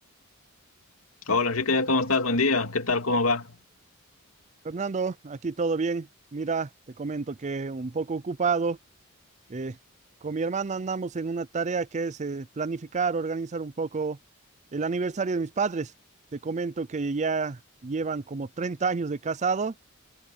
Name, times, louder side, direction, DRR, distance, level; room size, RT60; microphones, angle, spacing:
voice 1, 1.3-3.6, left 3 dB, 70° left, 2.7 m, -24 dB
voice 2, 4.6-6.7 7.0-8.8 9.5-9.8 10.2-14.2 14.7-15.9 16.3-19.7, right 4 dB, 35° right, 0.5 m, -29 dB
head